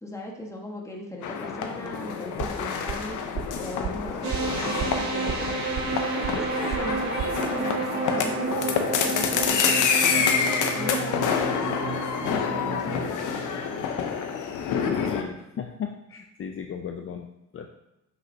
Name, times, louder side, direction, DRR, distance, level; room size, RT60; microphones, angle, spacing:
voice 1, 0.0-3.2 3.6-5.5 6.1-8.7 9.0-11.6 12.2-13.3, left 1 dB, 10° left, 0 dB, 1.5 m, -38 dB
sound 1, 1.2-15.2, left 6 dB, 80° left, 0.9 m, -27 dB
sound 2, 2.4-7.4, right 8 dB, 50° right, 0.6 m, -35 dB
sound 3, 4.2-14.1, right 4 dB, 85° right, 1.8 m, -31 dB
voice 2, 15.1-17.7, left 7 dB, 45° left, 5 dB, 0.6 m, -36 dB
7.7 x 6.4 x 2.8 m, 0.89 s
cardioid pair, 90°, 30 cm